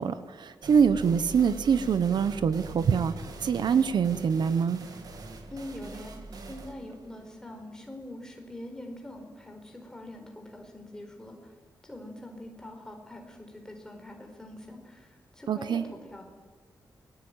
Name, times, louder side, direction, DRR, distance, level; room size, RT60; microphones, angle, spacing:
voice 1, 0.0-3.1 3.4-4.8 15.5-15.8, right 6 dB, 70° right, 12 dB, 1.2 m, -24 dB
sound 1, 0.6-8.1, right 3 dB, 55° right, 2.9 m, -44 dB
voice 2, 5.5-11.5 11.8-16.2, left 1 dB, 10° left, 3 dB, 4.6 m, -44 dB
29.0 x 22.0 x 9.2 m, 1.5 s
wide cardioid pair, 180°, 8 cm